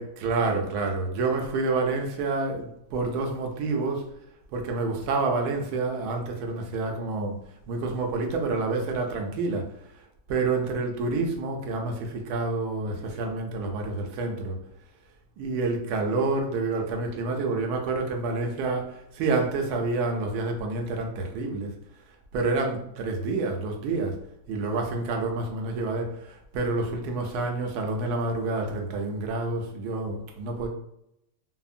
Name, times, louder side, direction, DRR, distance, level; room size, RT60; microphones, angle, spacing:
voice 1, 0.0-4.1 4.5-7.4 7.7-9.7 10.3-14.6 15.4-21.7 22.3-24.2 24.5-30.7, right 3 dB, 80° right, 2 dB, 1.1 m, -28 dB
3.5 x 2.0 x 2.4 m, 0.79 s
omnidirectional pair, 1.7 m